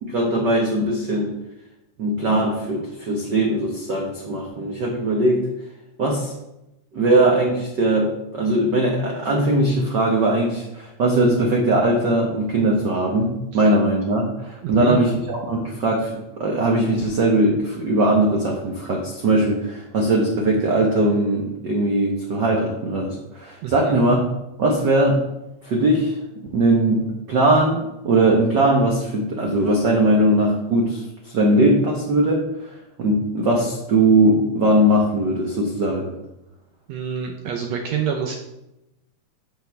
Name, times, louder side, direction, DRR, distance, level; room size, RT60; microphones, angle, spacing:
voice 1, 0.0-1.3 2.0-5.5 6.0-6.3 6.9-24.2 24.6-25.2 25.6-26.2 26.5-36.1, right 1 dB, 90° right, -1 dB, 0.9 m, -20 dB
voice 2, 14.6-15.0 23.6-24.0 36.9-38.4, right 7 dB, 75° right, 2 dB, 1.7 m, -27 dB
12.0 x 4.7 x 3.4 m, 0.90 s
omnidirectional pair, 3.6 m